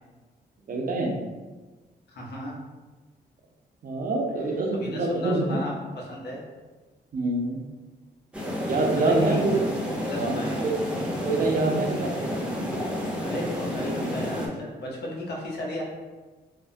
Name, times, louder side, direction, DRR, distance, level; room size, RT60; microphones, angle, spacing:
voice 1, 0.7-1.1 3.8-5.6 7.1-7.6 8.6-9.6 10.1-10.7 11.2-12.1, right 2 dB, 50° right, 0 dB, 0.5 m, -25 dB
voice 2, 2.1-2.6 4.7-6.4 8.8-9.4 10.0-10.6 13.2-15.8, left 1 dB, 65° left, -3 dB, 0.8 m, -35 dB
sound 1, 8.3-14.5, left 1 dB, 5° right, 0.6 m, -30 dB
3.3 x 2.1 x 2.6 m, 1.3 s
cardioid pair, 85°, 18 cm